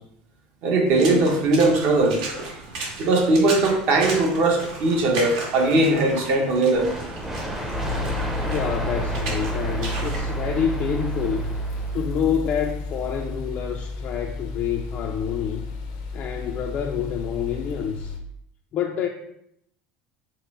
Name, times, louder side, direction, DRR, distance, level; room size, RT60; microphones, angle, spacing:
voice 1, 0.6-2.2 3.0-6.9, right 2 dB, 55° right, 2 dB, 0.9 m, -19 dB
Water / Splash splatter, 0.9-10.2, right 3 dB, 80° right, 1.4 m, -35 dB
sound 1, 6.7-12.3, equal, 5° right, 0.6 m, -33 dB
sound 2, 7.7-18.2, equal, 90° left, 0.7 m, -31 dB
voice 2, 8.4-11.5 11.9-15.6 16.1-18.1 18.7-19.1, left 8 dB, 40° left, 2 dB, 0.3 m, -27 dB
5.2 x 2.0 x 4.1 m, 0.75 s
cardioid pair, 145°, 4 cm